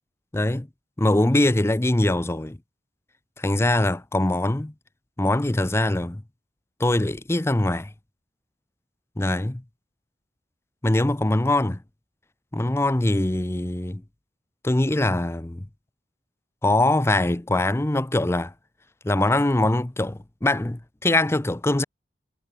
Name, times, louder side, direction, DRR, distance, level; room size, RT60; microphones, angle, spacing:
voice 1, 0.3-0.7 1.0-2.6 3.4-4.7 5.2-6.2 6.8-7.9 9.2-9.6 10.8-11.8 12.5-14.0 14.6-15.7 16.6-18.5 19.0-21.8, left 1 dB, 15° left, 0.6 m, -22 dB
head